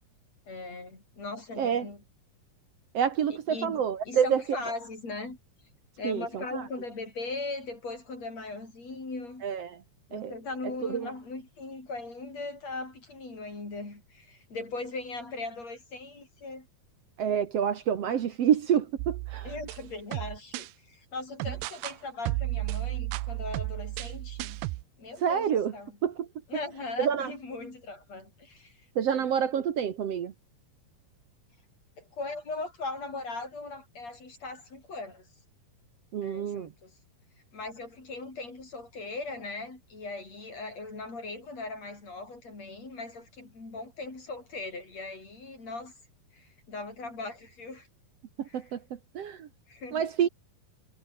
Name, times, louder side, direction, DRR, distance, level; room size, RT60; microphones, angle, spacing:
voice 1, 0.5-2.0 3.3-5.4 6.0-9.4 10.1-16.7 19.4-24.6 25.0-26.0 26.5-28.8 29.1-29.3 32.0-35.3 36.2-36.9 37.5-45.9 46.3-47.9 48.4-48.7 49.7-50.1, left 3 dB, 40° left, 8.7 m, -39 dB
voice 2, 2.9-4.6 6.0-6.6 9.4-9.8 10.1-10.3 10.9-11.1 17.2-19.5 25.2-25.7 26.0-26.3 27.0-27.3 28.9-30.3 36.1-36.7 48.4-49.5 49.9-50.3, right 8 dB, 65° right, 1.6 m, -28 dB
sound 1, 19.0-20.7 21.4-22.0 22.3-24.8, right 19 dB, 85° right, 2.8 m, -33 dB
omnidirectional pair, 4.6 m